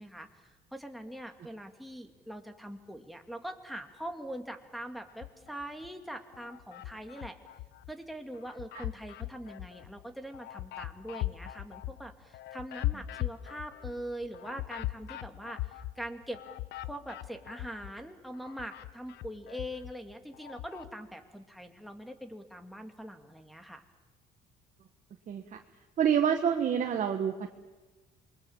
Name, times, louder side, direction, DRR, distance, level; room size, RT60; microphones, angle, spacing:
voice 1, 0.0-7.4 7.9-15.6 16.0-16.4 16.8-23.8, equal, ahead, 4 dB, 2.4 m, -42 dB
sound 1, 5.1-5.9 6.3-7.9 8.3-18.0 18.3-20.9, left 16 dB, 85° left, 0.7 m, -40 dB
voice 2, 26.0-27.5, right 8 dB, 50° right, 4 dB, 1.5 m, -27 dB
27.5 x 22.5 x 7.3 m, 1.2 s
cardioid pair, 110°, 17 cm